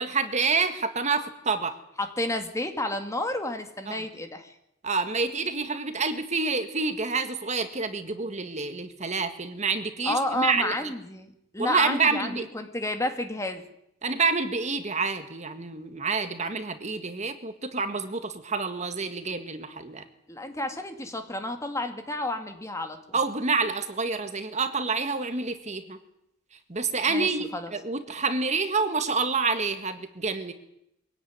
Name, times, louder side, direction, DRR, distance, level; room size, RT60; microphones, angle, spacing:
voice 1, 0.0-1.7 3.9-4.0 4.8-10.7 11.6-12.4 14.0-20.1 23.1-26.0 26.7-30.5, right 4 dB, 35° right, 8 dB, 1.7 m, -28 dB
voice 2, 2.0-4.5 10.0-13.6 20.3-23.0 27.1-27.7, left 1 dB, 15° left, 6 dB, 2.2 m, -31 dB
23.5 x 17.0 x 9.5 m, 0.80 s
head